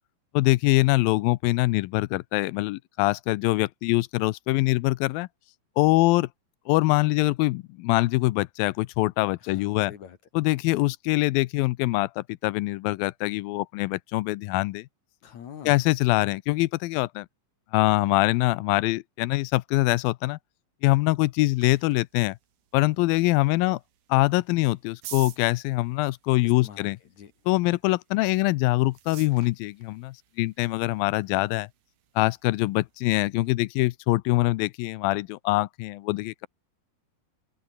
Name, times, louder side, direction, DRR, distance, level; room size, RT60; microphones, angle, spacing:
voice 1, 0.3-5.3 5.8-6.3 6.7-9.9 10.4-14.9 15.7-17.3 17.7-20.4 20.8-22.4 22.7-23.8 24.1-27.0 27.5-31.7 32.2-36.5, left 20 dB, 90° left, 2.5 m, -24 dB
voice 2, 9.4-10.2 15.2-15.9 26.4-27.3, left 8 dB, 60° left, 2.9 m, -45 dB
sound 1, 20.9-33.5, right 12 dB, 75° right, 3.3 m, -51 dB
omnidirectional pair, 4.0 m